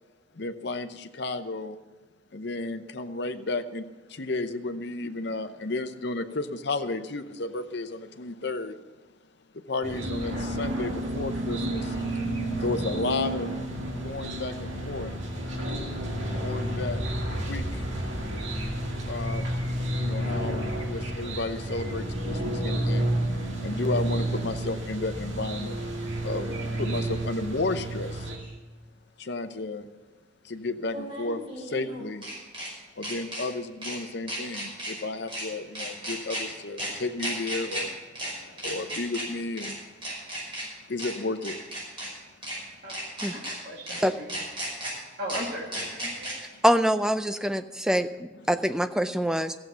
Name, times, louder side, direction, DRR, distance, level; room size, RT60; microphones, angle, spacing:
voice 1, 0.3-1.8 2.3-8.8 9.7-12.0 12.6-13.5 14.0-15.1 16.4-17.0 17.3-17.8 19.1-19.5 19.9-23.1 23.6-25.8 26.2-26.5 26.8-28.3 29.2-29.9 30.4-32.2 33.0-39.9 40.4-41.6 46.5-46.6 48.4-48.5, left 2 dB, 55° left, 8 dB, 0.8 m, -33 dB
sound 1, 9.8-28.4, right 1 dB, 70° right, 2.3 m, -30 dB
sound 2, 28.4-28.5 30.8-32.7 33.0-33.4 33.8-34.0 34.3-34.9 35.3-35.4 35.7-36.4 36.8-36.9 37.2-37.8 38.1-38.3 38.6-39.2 39.6-39.7 40.0-40.6 41.0-41.1 41.4-42.1 42.4-42.6 42.9-43.5 43.9-44.0 44.3-44.9 45.3-45.4 45.7-46.3, right 1 dB, 25° right, 5.4 m, -34 dB
voice 2, 42.8-44.4 45.2-46.3, equal, 50° right, -2 dB, 2.3 m, -38 dB
voice 3, 46.6-49.5, equal, 5° right, 9 dB, 0.4 m, -24 dB
14.5 x 7.7 x 6.9 m, 1.2 s
head